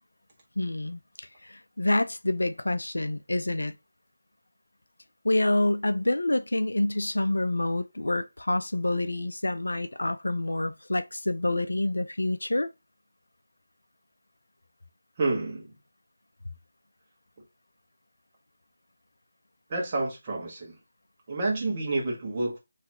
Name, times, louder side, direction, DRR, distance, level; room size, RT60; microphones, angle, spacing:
voice 1, 0.6-3.8 5.2-12.7, left 1 dB, 65° left, 0.4 m, -27 dB
voice 2, 15.2-15.7 19.7-20.8 21.3-22.6, right 2 dB, 25° right, 1.6 m, -29 dB
5.6 x 3.2 x 2.9 m
figure-of-eight pair, 160°, 0 cm